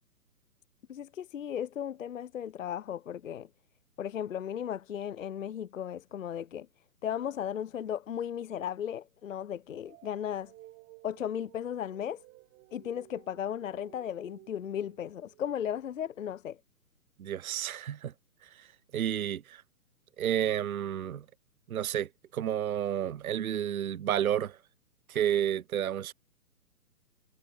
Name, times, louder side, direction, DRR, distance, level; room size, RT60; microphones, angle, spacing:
voice 1, 0.9-3.5 4.0-6.7 7.0-10.5 11.0-12.2 12.7-16.6, left 9 dB, 55° left, 0.6 m, -36 dB
sound 1, 9.9-15.5, right 26 dB, 20° right, 7.4 m, -56 dB
voice 2, 17.2-18.1 18.6-18.7 18.9-19.6 20.2-21.2 21.7-24.6 25.1-26.1, right 10 dB, 65° right, 0.5 m, -31 dB
figure-of-eight pair, 130°, 47 cm